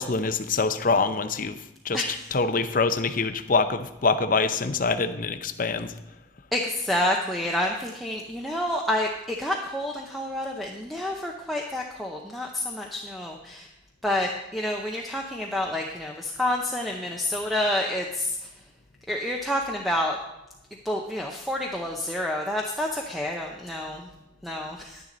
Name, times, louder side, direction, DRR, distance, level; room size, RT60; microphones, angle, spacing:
voice 1, 0.0-1.6 1.8-5.9, left 4 dB, 45° left, 8 dB, 0.7 m, -25 dB
voice 2, 6.5-13.7 14.0-18.3 19.1-20.2 20.8-24.0 24.4-25.0, left 1 dB, ahead, -1 dB, 0.7 m, -28 dB
11.0 x 10.5 x 3.9 m, 0.93 s
head